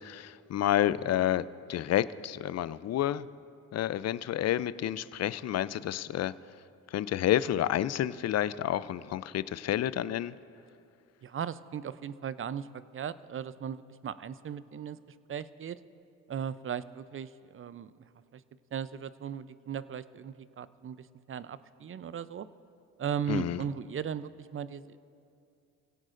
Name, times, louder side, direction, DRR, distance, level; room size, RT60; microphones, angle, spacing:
voice 1, 0.0-3.3 3.7-6.3 6.9-10.3 23.3-23.6, left 12 dB, 40° left, 17 dB, 0.5 m, -29 dB
voice 2, 11.2-15.0 15.3-15.8 16.3-17.9 18.3-18.4 18.7-22.5 23.0-25.0, right 8 dB, 30° right, 15 dB, 0.6 m, -37 dB
27.0 x 16.5 x 2.6 m, 2.5 s
hypercardioid pair, 60°, 40 cm